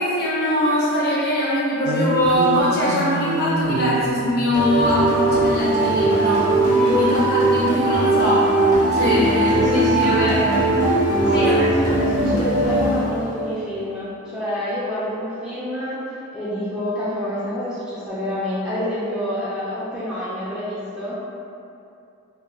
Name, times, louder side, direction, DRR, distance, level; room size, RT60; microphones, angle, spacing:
voice 1, 0.0-6.5 6.9-8.5 8.9-11.7, equal, 45° left, -7 dB, 0.6 m, -22 dB
sound 1, 1.8-7.5 9.1-13.3, right 1 dB, 90° right, 0.3 m, -30 dB
sound 2, 4.5-13.5, right 2 dB, 65° left, 1.0 m, -19 dB
voice 2, 6.6-7.0 9.5-10.5 11.2-16.0 16.3-21.1, equal, 5° right, -12 dB, 0.3 m, -27 dB
2.2 x 2.1 x 3.5 m, 2.6 s
head